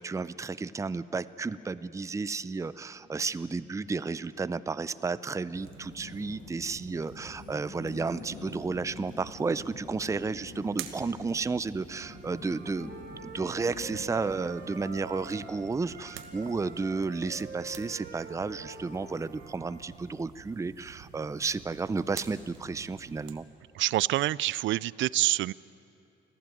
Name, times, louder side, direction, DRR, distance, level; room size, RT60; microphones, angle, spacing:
voice 1, 0.0-12.9 13.2-23.4, right 4 dB, 15° right, 15 dB, 0.5 m, -32 dB
sound 1, 2.4-17.8, left 5 dB, 65° left, 2.7 m, -49 dB
sound 2, 5.5-23.3, right 9 dB, 90° right, 1.3 m, -49 dB
Wind instrument woodwind instrument, 11.9-15.5 15.8-19.8, right 4 dB, 45° right, 4.7 m, -45 dB
voice 2, 23.7-25.5, right 16 dB, 75° right, 22 dB, 0.4 m, -26 dB
24.5 x 15.0 x 9.2 m, 2.9 s
cardioid pair, 90°, 20 cm